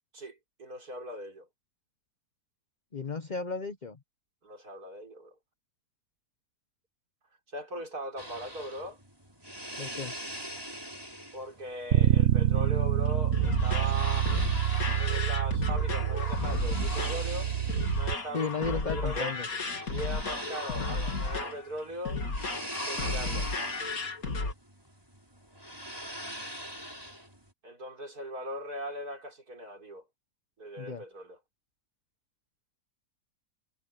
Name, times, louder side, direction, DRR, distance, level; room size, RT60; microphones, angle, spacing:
voice 1, 0.1-1.5 4.4-5.3 7.5-9.0 11.3-14.4 15.0-17.5 18.0-19.4 19.9-22.2 22.9-23.5 27.6-30.0 30.6-31.4, equal, 85° right, 5.6 m, -39 dB
voice 2, 2.9-4.0 9.8-10.1 18.3-19.5 30.8-31.0, left 4 dB, 30° left, 1.2 m, -34 dB
sound 1, 8.2-27.5, equal, 15° right, 5.2 m, -43 dB
Bass guitar, 11.9-18.2, right 11 dB, 60° right, 1.1 m, -27 dB
sound 2, 13.0-24.5, left 3 dB, 75° left, 3.3 m, -34 dB
omnidirectional pair, 1.6 m